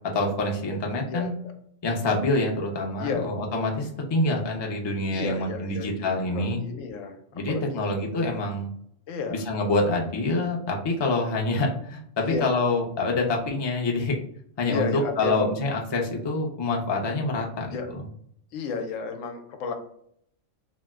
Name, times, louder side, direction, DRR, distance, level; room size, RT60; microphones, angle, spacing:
voice 1, 0.1-1.3 1.8-6.6 7.3-8.7 9.3-14.2 14.6-18.0, left 2 dB, 40° left, 0 dB, 0.4 m, -26 dB
voice 2, 1.1-1.5 3.0-3.3 5.1-7.2 7.5-7.8 9.1-9.4 12.2-12.5 14.7-15.5 17.7-17.9 18.5-19.7, left 5 dB, 85° left, 5 dB, 1.0 m, -32 dB
2.8 x 2.1 x 3.4 m, 0.67 s
omnidirectional pair, 1.3 m